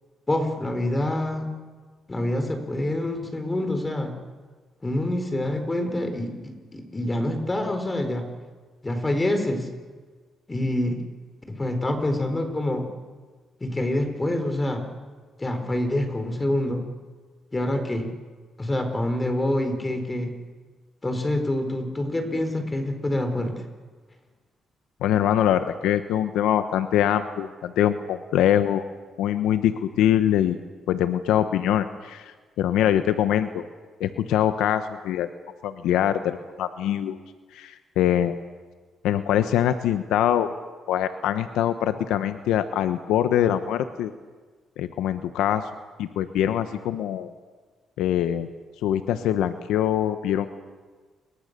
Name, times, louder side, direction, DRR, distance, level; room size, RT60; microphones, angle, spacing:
voice 1, 0.3-1.5 2.1-4.1 4.8-8.2 8.8-9.7 10.5-11.0 11.5-12.9 13.6-14.9 15.4-16.8 17.5-18.1 18.6-20.3 21.0-23.5, left 1 dB, 20° left, 7 dB, 4.6 m, -26 dB
voice 2, 25.0-28.9 29.2-30.6 30.9-33.6 34.0-35.3 35.6-37.2 37.5-38.3 39.0-40.5 40.9-44.1 44.8-45.7 46.0-47.3 48.0-48.5 48.8-50.5, left 11 dB, 90° left, 10 dB, 1.1 m, -23 dB
29.5 x 23.5 x 6.9 m, 1.4 s
cardioid pair, 90°, 0 cm